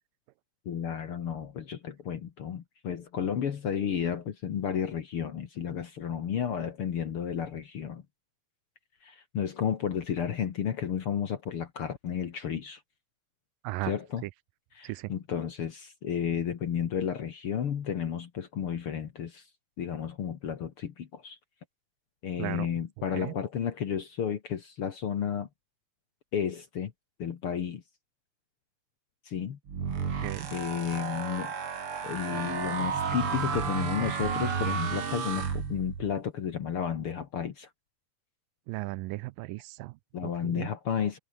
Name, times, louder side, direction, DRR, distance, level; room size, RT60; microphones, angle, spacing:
voice 1, 0.7-8.0 9.0-12.8 13.8-14.2 14.7-19.4 19.8-21.4 22.2-25.5 26.3-26.9 27.2-27.8 29.3-29.6 30.5-31.5 32.0-37.7 40.1-41.2, left 8 dB, 50° left, 1.8 m, -32 dB
sound 1, 29.7-36.1, right 6 dB, 40° right, 3.0 m, -32 dB
voice 2, 38.7-39.9 40.2-40.7, right 20 dB, 85° right, 2.2 m, -36 dB
omnidirectional pair, 4.1 m